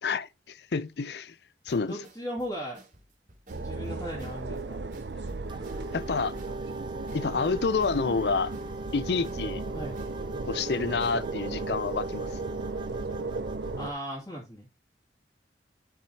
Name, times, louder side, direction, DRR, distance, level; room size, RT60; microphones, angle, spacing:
voice 1, 0.0-1.3 1.7-2.0 5.9-6.3 7.1-8.5 8.9-9.6 10.4-12.3, left 4 dB, 65° left, 0.5 m, -28 dB
sound 1, 1.7-11.3, right 2 dB, 50° right, 2.9 m, -55 dB
voice 2, 1.9-2.8 3.6-4.8 9.7-9.9 13.8-14.7, equal, 20° left, 2.5 m, -37 dB
sound 2, 3.5-13.9, right 3 dB, 75° right, 0.7 m, -36 dB
sound 3, 5.5-13.9, right 2 dB, 25° right, 0.7 m, -41 dB
11.5 x 6.1 x 2.8 m
head